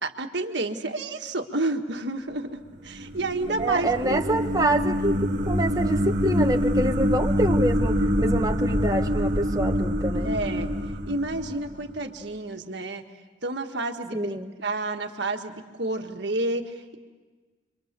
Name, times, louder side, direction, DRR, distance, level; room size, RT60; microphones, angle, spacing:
voice 1, 0.0-4.3 10.1-10.7 11.0-13.0 13.4-17.0, right 2 dB, 60° right, 4 dB, 1.6 m, -30 dB
sound 1, 2.8-12.0, equal, 40° right, 2.0 m, -25 dB
voice 2, 3.6-10.3 14.1-14.5, right 1 dB, 20° right, 3 dB, 1.2 m, -26 dB
30.0 x 24.0 x 6.8 m, 1.4 s
head